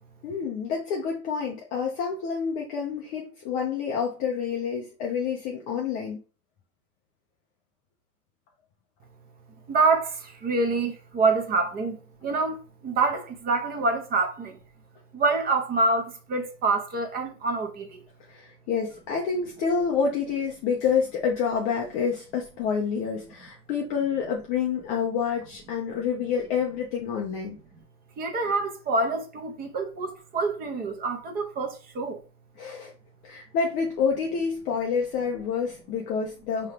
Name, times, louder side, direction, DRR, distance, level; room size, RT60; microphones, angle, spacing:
voice 1, 0.2-6.2 18.3-27.6 32.6-32.9 33.2-36.7, left 6 dB, 20° left, 0.3 m, -28 dB
voice 2, 9.7-10.1 10.4-12.0 12.2-12.6 12.8-14.5 15.1-18.0 28.2-32.2, right 3 dB, 20° right, 0.7 m, -26 dB
4.5 x 2.9 x 3.3 m
hypercardioid pair, 130°, 45 cm